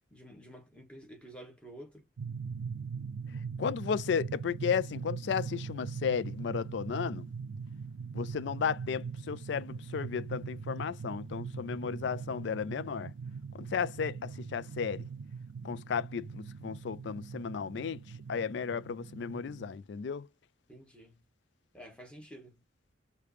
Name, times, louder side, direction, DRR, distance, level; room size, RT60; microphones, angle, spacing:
voice 1, 0.1-2.1 20.7-21.2 21.7-22.6, equal, 5° left, 1.6 m, -50 dB
sound 1, 2.2-19.8, right 5 dB, 90° right, 0.4 m, -41 dB
voice 2, 3.6-7.3 8.1-13.1 13.5-15.0 15.6-18.0 18.3-20.3, left 6 dB, 65° left, 0.3 m, -34 dB
5.0 x 2.8 x 3.2 m
head